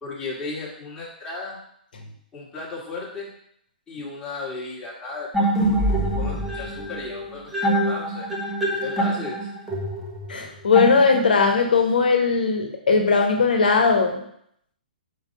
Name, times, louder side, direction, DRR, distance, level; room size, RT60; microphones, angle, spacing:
voice 1, 0.0-1.6 2.3-3.3 3.9-8.3 8.8-9.5, left 3 dB, 15° left, -6 dB, 1.8 m, -35 dB
sound 1, 5.3-11.5, right 1 dB, 5° right, 1.3 m, -25 dB
voice 2, 10.3-14.2, left 4 dB, 65° left, 3 dB, 1.3 m, -19 dB
5.1 x 4.6 x 5.2 m, 0.70 s
figure-of-eight pair, 125°, 5 cm